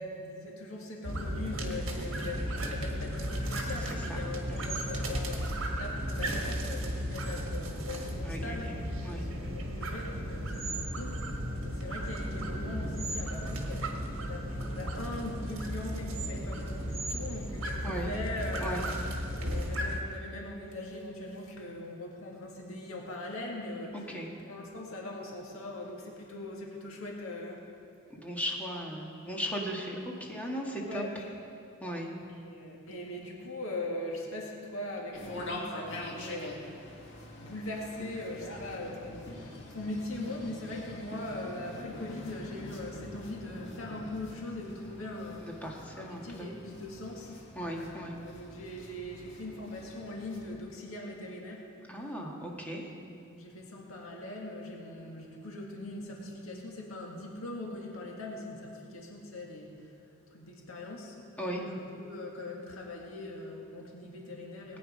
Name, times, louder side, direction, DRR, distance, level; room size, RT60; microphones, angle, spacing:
voice 1, 0.0-8.7 9.2-11.1 11.6-19.1 19.4-24.2 24.4-27.7 30.8-31.3 32.3-36.7 37.4-45.5 45.9-47.4 47.7-51.7 52.0-52.1 52.4-59.9 60.3-61.2 61.5-64.8, left 2 dB, 80° left, -1 dB, 2.0 m, -41 dB
sound 1, 1.0-20.0, equal, 65° right, 1.7 m, -35 dB
voice 2, 8.2-8.7 9.0-9.2 17.8-18.1 18.6-18.8 24.1-24.3 28.1-31.0 31.8-32.1 45.6-46.6 47.5-48.1 51.9-52.8 61.4-61.6, equal, 5° left, -2 dB, 1.7 m, -37 dB
sound 2, 35.1-50.6, left 1 dB, 60° left, 2.1 m, -45 dB
19.5 x 9.3 x 5.3 m, 2.6 s
head